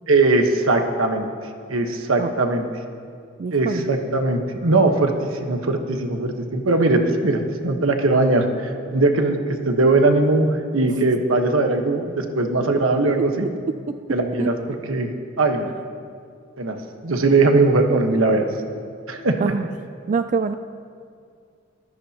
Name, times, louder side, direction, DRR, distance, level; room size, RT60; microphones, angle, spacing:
voice 1, 0.1-1.3 1.7-2.6 3.5-13.5 14.1-14.5 14.8-15.1 15.4-15.7 16.6-16.8 17.0-18.5 19.1-19.3, right 2 dB, 85° right, 4 dB, 1.3 m, -20 dB
voice 2, 3.4-3.9 13.9-14.0 14.4-14.5 19.4-19.7 20.1-20.5, right 5 dB, 40° right, 10 dB, 0.3 m, -24 dB
23.0 x 14.5 x 2.9 m, 2.2 s
head